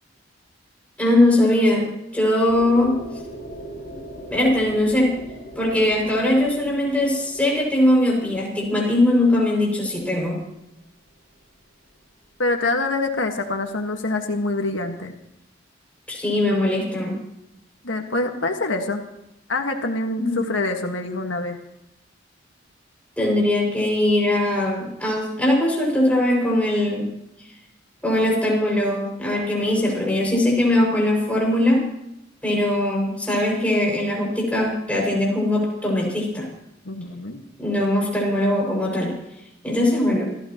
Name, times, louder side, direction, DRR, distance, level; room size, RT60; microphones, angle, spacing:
voice 1, 1.0-3.0 4.3-5.1 5.6-10.4 16.1-17.2 20.2-20.4 23.2-27.1 28.0-31.9 32.4-36.5 37.6-39.1 39.6-40.3, left 1 dB, 10° left, -2 dB, 6.2 m, -20 dB
sound 1, 2.5-10.3, right 1 dB, 50° left, 7.7 m, -40 dB
voice 2, 12.4-15.1 17.8-19.0 19.5-21.6 36.9-37.4, left 2 dB, 90° left, 4 dB, 1.7 m, -25 dB
27.0 x 15.0 x 3.1 m, 0.86 s
head